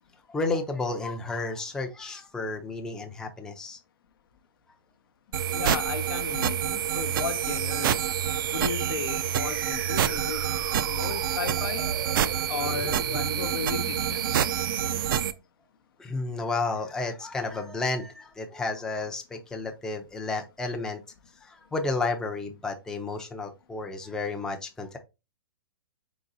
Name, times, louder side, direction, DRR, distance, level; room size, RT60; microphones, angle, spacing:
voice 1, 0.3-3.8 11.0-11.1 16.0-21.0 21.4-25.0, left 3 dB, 5° left, 0.5 m, -32 dB
sound 1, 5.3-15.3, right 9 dB, 60° right, 0.4 m, -27 dB
voice 2, 5.5-8.0 8.5-10.5 10.8-11.9 12.5-14.2, left 7 dB, 65° left, 0.6 m, -35 dB
3.9 x 3.9 x 2.5 m
hypercardioid pair, 135°, 13 cm